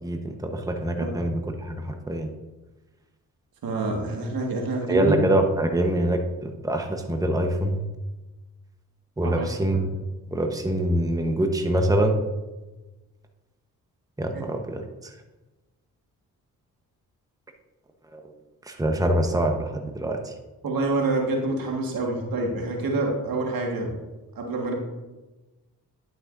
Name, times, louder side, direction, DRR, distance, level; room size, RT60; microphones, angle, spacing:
voice 1, 0.0-2.3 4.9-7.8 9.2-9.9 10.3-12.2 14.2-14.8 18.1-18.2 18.7-20.3, right 1 dB, 10° right, 4 dB, 1.1 m, -24 dB
voice 2, 3.6-5.2 9.2-9.5 14.3-14.4 20.6-23.9 24.4-24.7, right 2 dB, 65° right, 1 dB, 1.8 m, -27 dB
11.0 x 6.3 x 2.6 m, 1.1 s
supercardioid pair, 55°, 37 cm